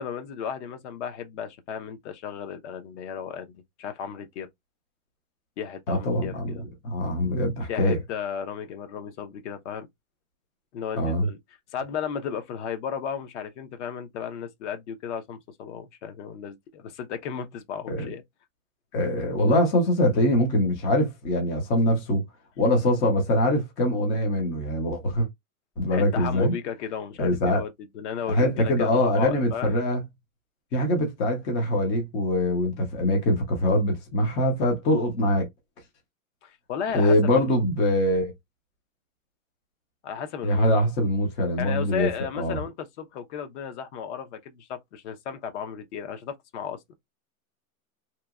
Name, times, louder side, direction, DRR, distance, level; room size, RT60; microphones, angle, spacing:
voice 1, 0.0-4.5 5.6-6.6 7.7-9.9 10.7-11.4 11.7-18.2 25.9-27.7 27.9-29.7 36.4-37.2 37.5-37.6 40.0-40.7 41.6-46.9, left 7 dB, 50° left, 0.8 m, -34 dB
voice 2, 5.9-6.6 6.8-8.0 11.0-11.3 17.9-18.1 18.9-22.2 22.6-25.3 25.8-26.5 27.2-27.6 28.3-30.0 30.7-35.5 36.9-38.3 40.4-42.1 42.3-42.6, left 1 dB, 15° left, 0.4 m, -23 dB
2.8 x 2.7 x 2.3 m
hypercardioid pair, 140°, 44 cm